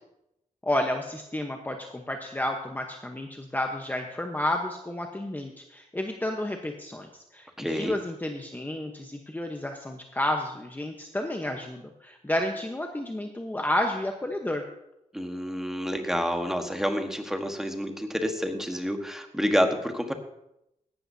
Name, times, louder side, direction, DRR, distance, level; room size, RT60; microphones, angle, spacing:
voice 1, 0.6-14.6, left 1 dB, 15° left, 3 dB, 1.0 m, -31 dB
voice 2, 7.6-8.0 15.1-20.1, equal, 5° right, 4 dB, 1.4 m, -28 dB
16.5 x 12.0 x 2.8 m, 0.83 s
wide cardioid pair, 105°, 14 cm